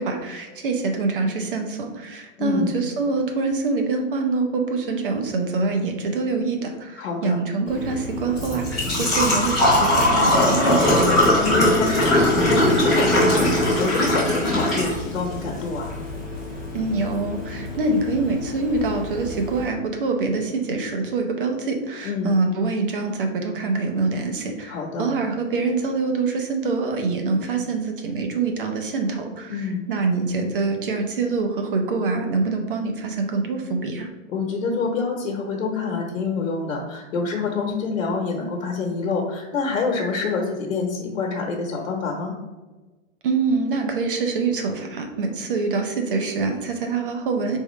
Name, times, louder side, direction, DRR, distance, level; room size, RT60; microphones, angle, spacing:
voice 1, 0.0-11.1 16.7-34.1 43.2-47.6, right 3 dB, 45° right, 4 dB, 0.7 m, -25 dB
voice 2, 2.4-2.7 7.0-7.4 11.4-16.0 22.0-22.3 24.7-25.1 29.5-29.9 34.3-42.3, left 4 dB, 90° left, 0 dB, 1.0 m, -27 dB
Engine / Trickle dribble / Fill (with liquid), 7.7-19.6, left 1 dB, ahead, 0.6 m, -21 dB
4.5 x 3.6 x 3.1 m, 1.2 s
hypercardioid pair, 175°, 39 cm